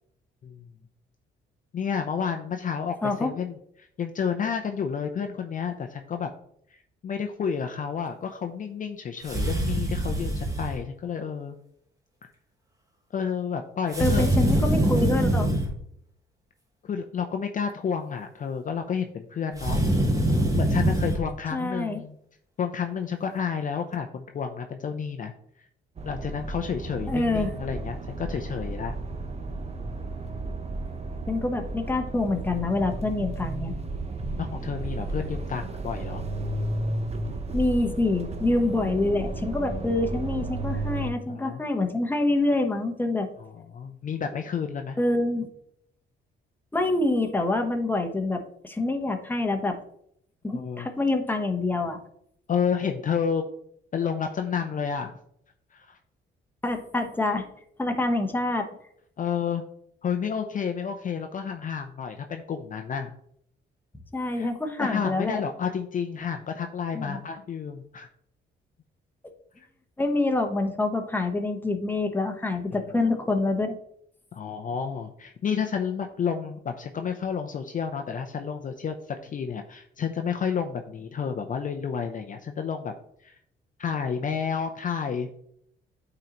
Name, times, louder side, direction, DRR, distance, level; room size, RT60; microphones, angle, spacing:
voice 1, 1.7-6.3 7.0-11.6 13.1-14.3 16.8-19.8 20.5-22.2 22.6-25.3 26.0-28.9 34.4-36.2 41.3-41.6 43.4-45.0 50.5-50.9 52.5-53.4 53.9-55.1 55.7-56.0 59.2-59.6 60.0-63.1 64.4-64.5 64.8-68.1 72.9-73.1 74.3-82.9 83.2-83.4 83.8-85.3, left 7 dB, 40° left, 5 dB, 0.5 m, -30 dB
sound 1, 9.2-10.8 13.9-15.7 19.5-21.2, right 1 dB, 15° right, 1.2 m, -24 dB
voice 2, 14.0-15.5 21.5-22.0 27.1-27.5 31.3-33.7 37.5-43.3 45.0-45.5 46.7-49.8 50.4-52.0 56.6-57.5 57.8-58.7 64.1-65.4 66.9-67.2 70.0-73.7, left 2 dB, 10° left, 4 dB, 0.9 m, -26 dB
sound 2, 26.0-41.1, right 2 dB, 30° right, 0.8 m, -33 dB
8.9 x 3.9 x 2.9 m, 0.71 s
cardioid pair, 90°, 20 cm